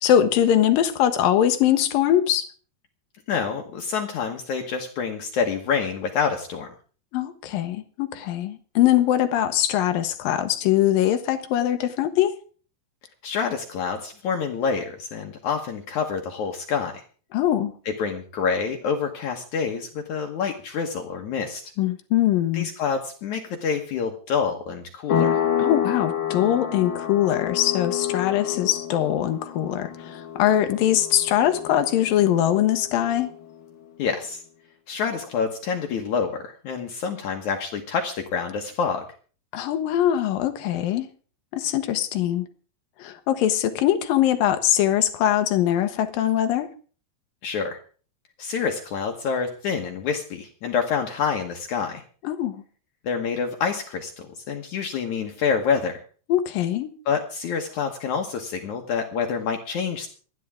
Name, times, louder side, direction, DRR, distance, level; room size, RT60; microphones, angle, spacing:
voice 1, 0.0-2.5 7.1-12.4 17.3-17.7 21.8-22.7 25.6-33.3 39.5-41.1 41.5-42.5 43.0-46.7 52.2-52.6 56.3-56.9, left 11 dB, 85° left, 2.7 m, -22 dB
voice 2, 3.3-6.7 13.2-17.0 17.9-21.6 22.5-25.4 34.0-34.4 34.9-39.0 47.4-47.8 48.4-52.0 53.0-56.0 57.1-60.1, left 6 dB, 65° left, 2.5 m, -27 dB
sound 1, 25.1-33.4, left 9 dB, 45° left, 2.0 m, -28 dB
27.0 x 10.0 x 3.6 m
omnidirectional pair, 3.9 m